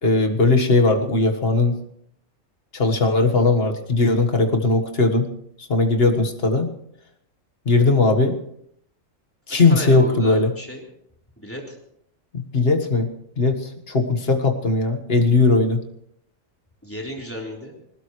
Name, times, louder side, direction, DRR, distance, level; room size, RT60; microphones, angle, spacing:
voice 1, 0.0-1.8 2.7-5.3 5.6-6.7 7.6-8.4 9.5-10.5 12.3-13.1 13.4-15.8, left 3 dB, 50° left, 4 dB, 1.8 m, -19 dB
voice 2, 9.5-10.8 11.4-11.8 16.8-17.7, equal, 10° left, -2 dB, 3.7 m, -34 dB
21.0 x 19.0 x 3.2 m, 0.72 s
omnidirectional pair, 1.4 m